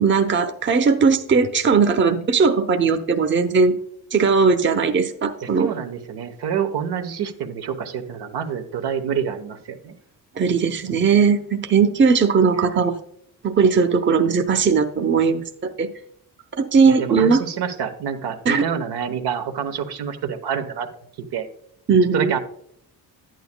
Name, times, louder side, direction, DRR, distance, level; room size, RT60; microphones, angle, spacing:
voice 1, 0.0-3.8 4.1-5.7 10.4-12.9 13.4-15.9 16.6-17.4 18.5-18.7 21.9-22.3, right 5 dB, 30° right, 7 dB, 0.8 m, -18 dB
voice 2, 5.4-9.9 12.5-12.8 16.9-20.9 21.3-21.5 22.1-22.4, right 7 dB, 75° right, 6 dB, 1.1 m, -27 dB
11.0 x 9.2 x 2.2 m, 0.68 s
cardioid pair, 90°, 39 cm